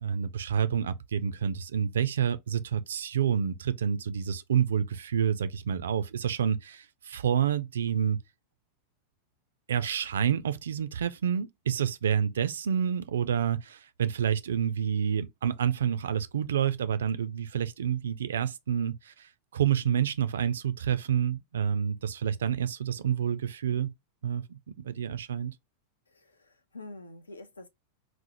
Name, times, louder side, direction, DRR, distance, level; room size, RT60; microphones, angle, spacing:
voice 1, 0.0-8.2 9.7-23.9 24.2-24.6 24.8-25.5, right 8 dB, 65° right, 0.3 m, -28 dB
voice 2, 26.1-27.7, left 2 dB, 75° left, 0.5 m, -47 dB
4.1 x 2.0 x 2.8 m
figure-of-eight pair, 90°, 0 cm